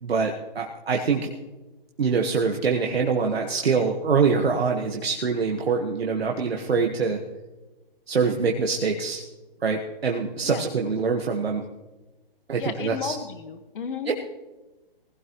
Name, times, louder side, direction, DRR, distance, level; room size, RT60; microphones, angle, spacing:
voice 1, 0.0-1.3 2.0-7.2 8.1-9.2 9.6-11.6 12.5-13.1 14.1-14.2, right 5 dB, 90° right, 1 dB, 1.6 m, -24 dB
voice 2, 12.6-14.1, left 6 dB, 60° left, 7 dB, 1.7 m, -33 dB
20.5 x 16.0 x 3.1 m, 1.1 s
hypercardioid pair, 155°, 30 cm